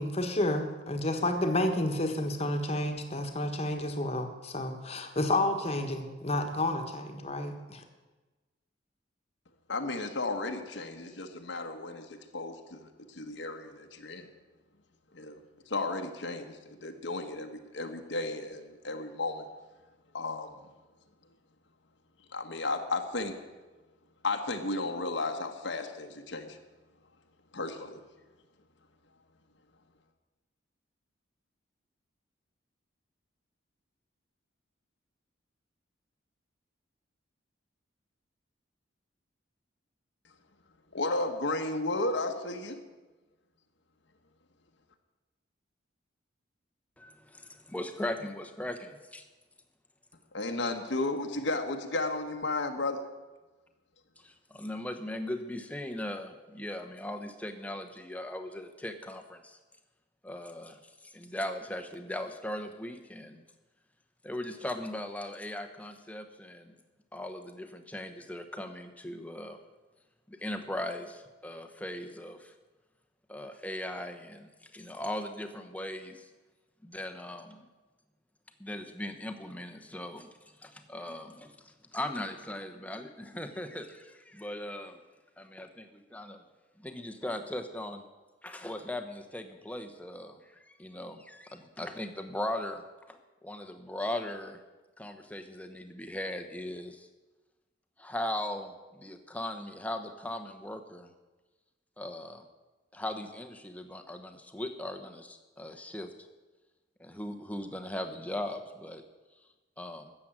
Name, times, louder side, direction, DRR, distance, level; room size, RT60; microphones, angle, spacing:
voice 1, 0.0-7.8, left 1 dB, 30° left, 6 dB, 1.4 m, -30 dB
voice 2, 9.7-14.3 15.1-15.4 15.7-19.5 20.1-20.5 22.3-23.3 24.2-26.6 27.5-28.0 40.9-42.8 50.3-53.0, left 2 dB, 65° left, 5 dB, 1.2 m, -34 dB
voice 3, 47.0-49.2 54.2-59.6 60.2-63.4 64.2-66.8 67.1-69.6 70.3-72.5 73.3-76.3 76.8-77.7 78.6-80.3 80.6-85.0 85.4-86.4 86.8-88.0 88.4-94.6 95.0-97.1 98.0-101.1 102.0-102.5 102.9-106.1 107.0-109.0 109.8-110.1, left 1 dB, 5° left, 6 dB, 0.9 m, -39 dB
13.5 x 7.7 x 8.8 m, 1.2 s
head